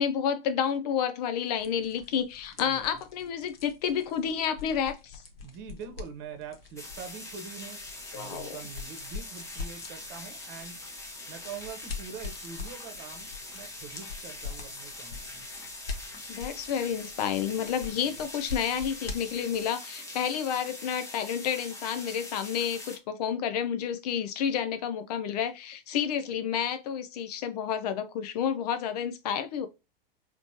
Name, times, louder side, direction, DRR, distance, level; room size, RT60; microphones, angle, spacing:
voice 1, 0.0-5.2 8.1-8.5 16.3-29.7, left 8 dB, 45° left, 0.4 m, -30 dB
sound 1, 1.6-19.7, left 5 dB, 75° left, 0.9 m, -44 dB
voice 2, 5.4-7.8 8.1-10.8 11.3-15.5 17.9-18.2, right 6 dB, 35° right, 1.0 m, -44 dB
sound 2, 6.8-23.0, left 2 dB, 10° left, 0.8 m, -43 dB
4.1 x 2.9 x 2.7 m
hypercardioid pair, 105°, 29 cm